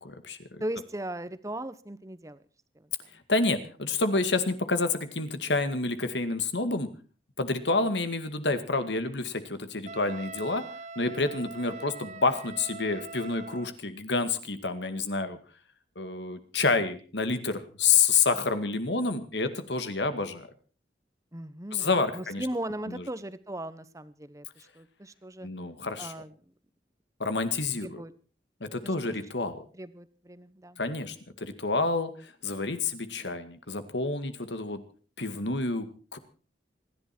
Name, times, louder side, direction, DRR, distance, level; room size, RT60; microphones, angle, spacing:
voice 1, 0.0-0.6 3.3-6.9 7.4-10.6 11.0-15.4 16.0-20.5 21.7-22.5 22.9-23.0 25.4-26.1 27.2-28.0 28.6-29.6 30.8-34.8 35.2-35.9 36.1-36.2, left 3 dB, 85° left, 10 dB, 2.1 m, -28 dB
voice 2, 0.6-2.4 2.7-2.9 21.3-25.5 26.0-26.3 27.8-28.1 29.0-29.3 29.7-30.8, right 1 dB, 20° right, 14 dB, 1.0 m, -38 dB
Wind instrument woodwind instrument, 9.9-13.8, right 4 dB, 40° right, 1.0 m, -43 dB
27.5 x 11.0 x 4.5 m, 0.38 s
head